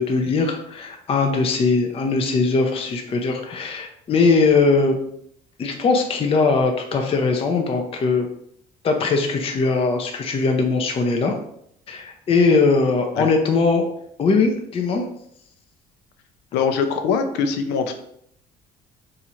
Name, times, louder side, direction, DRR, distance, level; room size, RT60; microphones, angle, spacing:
voice 1, 0.0-5.0 5.6-8.3 8.8-11.4 11.9-13.9 14.2-15.0, left 4 dB, 35° left, 3 dB, 0.5 m, -20 dB
voice 2, 16.5-17.9, left 6 dB, 85° left, 6 dB, 0.5 m, -22 dB
2.8 x 2.5 x 4.2 m, 0.70 s
cardioid pair, 110°, 17 cm